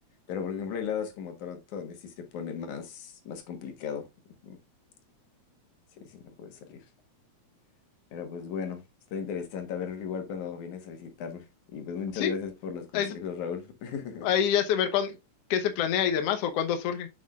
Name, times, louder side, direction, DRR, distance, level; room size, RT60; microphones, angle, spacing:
voice 1, 0.3-4.1 4.4-4.6 6.0-6.8 8.1-8.8 9.1-14.3, left 7 dB, 85° left, 2.8 m, -36 dB
voice 2, 14.2-15.2 15.5-17.1, left 9 dB, 65° left, 1.8 m, -26 dB
7.6 x 7.5 x 2.4 m
omnidirectional pair, 3.3 m